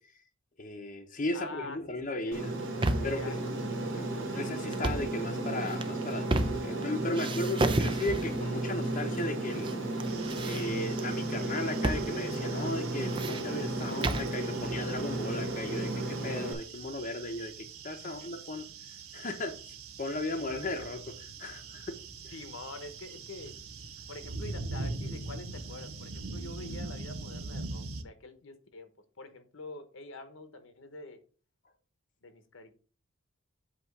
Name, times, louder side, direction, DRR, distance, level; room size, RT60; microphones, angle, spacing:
voice 1, 0.6-2.5 3.0-3.3 3.9-9.7 10.4-18.6 19.1-21.9 22.2-22.3, left 2 dB, 35° left, 0.8 m, -36 dB
voice 2, 1.3-2.4 3.0-3.4 18.0-18.3 22.3-23.6 24.1-28.9 29.2-31.2 32.2-32.7, left 2 dB, 60° left, 1.0 m, -46 dB
Aircraft, 2.3-16.5, right 2 dB, 60° right, 1.5 m, -34 dB
sound 1, 2.4-3.2 4.7-5.1 5.7-6.8 7.1-8.4 9.2-9.7 10.0-11.0 11.8-12.1 12.3-12.4 12.9-14.3, right 2 dB, 25° right, 0.5 m, -32 dB
sound 2, 10.1-28.0, right 3 dB, 80° right, 0.8 m, -43 dB
8.2 x 3.0 x 5.9 m
head